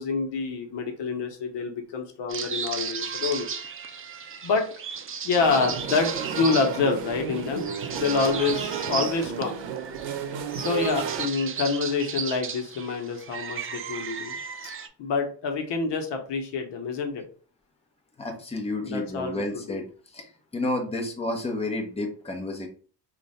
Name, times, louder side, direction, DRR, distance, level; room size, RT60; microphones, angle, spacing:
voice 1, 0.0-3.5 4.4-4.7 5.2-9.6 10.5-14.4 15.0-17.2 18.8-19.8, left 4 dB, 75° left, 4 dB, 0.9 m, -27 dB
sound 1, 2.3-14.9, right 6 dB, 30° right, 0.5 m, -35 dB
sound 2, 5.4-11.3, right 7 dB, 90° right, 0.7 m, -32 dB
voice 2, 18.2-19.8 20.1-22.7, left 2 dB, 15° left, 2 dB, 1.0 m, -30 dB
3.1 x 2.5 x 4.1 m, 0.41 s
cardioid pair, 90°, 43 cm